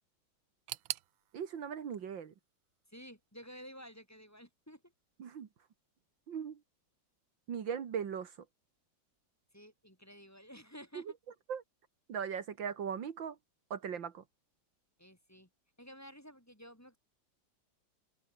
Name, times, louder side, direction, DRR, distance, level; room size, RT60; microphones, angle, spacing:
sound 1, 0.7-3.6 3.8-4.6 4.9-5.0 5.9-6.0, right 15 dB, 90° right, 1.5 m, -46 dB
voice 1, 1.3-2.3 5.2-5.5 6.3-6.6 7.5-8.4 10.9-11.0 11.5-11.6 12.1-13.4 13.7-14.2, right 7 dB, 75° right, 2.3 m, -38 dB
voice 2, 2.9-4.9 9.5-11.0 15.0-15.5 15.8-17.0, equal, 5° left, 5.2 m, -52 dB
open air
omnidirectional pair, 2.1 m